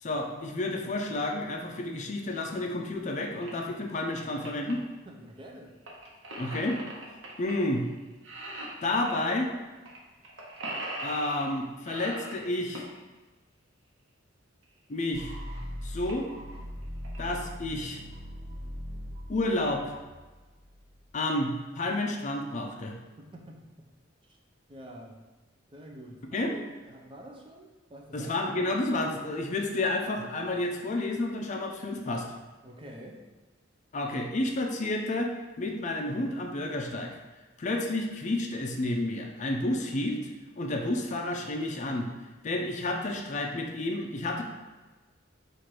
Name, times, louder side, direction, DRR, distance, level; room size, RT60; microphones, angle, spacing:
voice 1, 0.0-4.8 6.4-6.8 7.4-7.8 8.8-9.5 11.0-12.9 14.9-15.3 15.8-16.3 17.2-18.0 19.3-20.0 21.1-22.9 26.3-26.5 28.1-32.2 33.9-35.3 35.6-37.1 37.6-40.3 40.6-42.1 42.4-44.4, left 2 dB, 40° left, 2 dB, 0.5 m, -30 dB
sound 1, 3.4-3.5 3.9-4.7 5.9-7.5 7.8-9.1 9.9-10.0 10.2-11.5 11.8-13.0 14.6-14.7 15.3-15.4 15.6-15.7 16.0-16.3 16.8-17.2, right 1 dB, 85° right, 0.9 m, -39 dB
voice 2, 5.1-5.8 23.2-23.7 24.3-24.4 24.7-25.2 25.7-28.4 32.6-33.2, equal, 25° right, 0 dB, 0.5 m, -47 dB
sound 2, 15.1-21.1, equal, 50° right, 1.3 m, -40 dB
4.4 x 2.5 x 4.6 m, 1.2 s
head